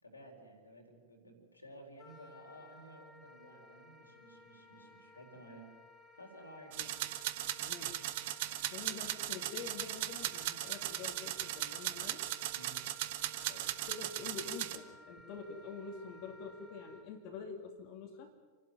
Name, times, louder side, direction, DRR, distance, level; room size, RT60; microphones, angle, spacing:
voice 1, 0.0-5.7 6.1-6.8 12.5-12.8, right 1 dB, 80° left, 2 dB, 4.3 m, -54 dB
Wind instrument woodwind instrument, 2.0-17.1, left 2 dB, 20° left, 3.2 m, -57 dB
sound 1, 6.7-14.8, right 14 dB, 50° right, 1.2 m, -38 dB
voice 2, 7.6-8.0 8.6-12.2 13.5-18.3, left 5 dB, 45° left, 2 dB, 2.4 m, -47 dB
28.5 x 12.0 x 9.2 m, 1.5 s
figure-of-eight pair, 90°, 0 cm